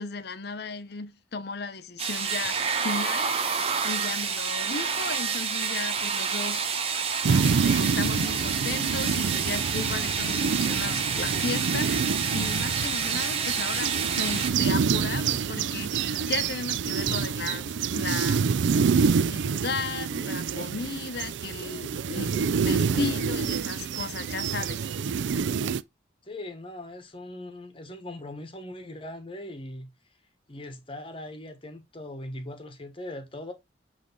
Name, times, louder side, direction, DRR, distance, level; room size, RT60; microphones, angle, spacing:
voice 1, 0.0-7.0 7.2-18.5 19.3-24.8, left 4 dB, 55° left, 0.7 m, -35 dB
sound 1, 2.0-14.5, right 6 dB, 30° right, 0.9 m, -29 dB
sound 2, 7.2-25.8, right 6 dB, 75° right, 0.4 m, -27 dB
voice 2, 26.2-29.9 30.5-33.5, left 1 dB, 30° left, 1.2 m, -40 dB
7.6 x 3.3 x 3.9 m
head